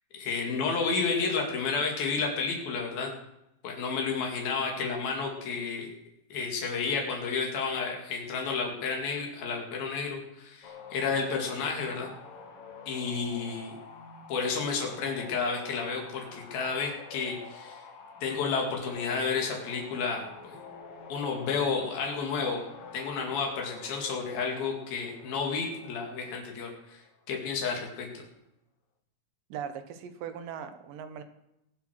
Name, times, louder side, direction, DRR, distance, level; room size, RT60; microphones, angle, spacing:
voice 1, 0.1-3.1 3.6-5.9 6.3-12.1 12.9-13.7 14.3-17.8 18.2-20.6 21.1-22.6 22.9-27.0 27.3-28.2, left 5 dB, 85° left, 1 dB, 4.1 m, -31 dB
sound 1, 10.6-27.3, left 5 dB, 50° left, 2.1 m, -47 dB
voice 2, 29.5-31.2, right 8 dB, 70° right, 9 dB, 2.8 m, -39 dB
22.0 x 7.9 x 6.3 m, 0.85 s
omnidirectional pair, 4.1 m